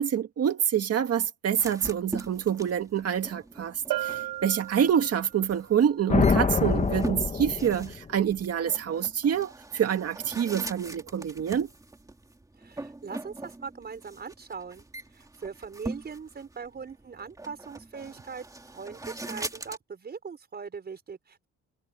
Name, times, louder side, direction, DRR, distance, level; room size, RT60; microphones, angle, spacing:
voice 1, 0.0-3.7 4.0-11.7, right 9 dB, 50° right, 1.9 m, -26 dB
sound 1, 1.6-19.8, right 2 dB, 10° right, 2.9 m, -42 dB
Bell, 3.9-5.5, right 15 dB, 80° right, 1.7 m, -34 dB
sound 2, 6.1-8.2, left 5 dB, 25° left, 1.3 m, -25 dB
voice 2, 12.6-18.5 18.7-21.5, right 5 dB, 30° right, 5.3 m, -41 dB
cardioid pair, 155°, 31 cm